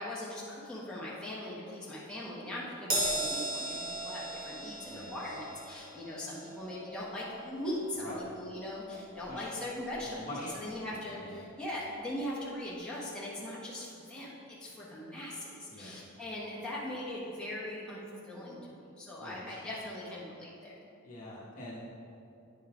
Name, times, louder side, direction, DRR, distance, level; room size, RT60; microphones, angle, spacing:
voice 1, 0.0-3.7 4.0-18.6 19.0-20.7, left 1 dB, 5° left, -8 dB, 1.1 m, -40 dB
Crash cymbal, 2.9-9.5 9.9-10.1 11.1-11.2, right 1 dB, 40° right, 1.3 m, -38 dB
voice 2, 4.8-5.4 7.9-8.2 9.3-9.5 10.0-11.4 15.7-16.0 19.2-19.6 21.0-21.8, left 1 dB, 40° left, -7 dB, 1.1 m, -45 dB
9.1 x 5.5 x 3.6 m, 2.7 s
head